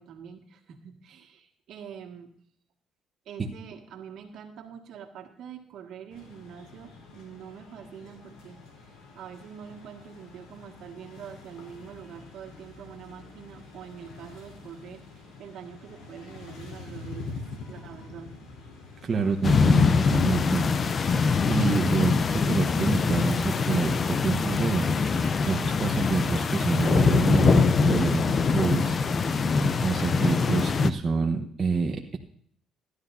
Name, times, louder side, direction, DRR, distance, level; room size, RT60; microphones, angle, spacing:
voice 1, 0.0-2.3 3.3-17.4 17.6-18.4, right 7 dB, 65° right, 3 dB, 1.8 m, -45 dB
sound 1, 6.1-24.8, left 3 dB, 80° left, 3.5 m, -46 dB
voice 2, 19.0-20.6 21.5-29.2 29.6-32.2, right 5 dB, 35° right, 1 dB, 1.1 m, -27 dB
sound 2, 19.4-30.9, left 5 dB, 40° left, 0.6 m, -23 dB
15.0 x 11.5 x 2.7 m, 0.62 s
cardioid pair, 100°, 0 cm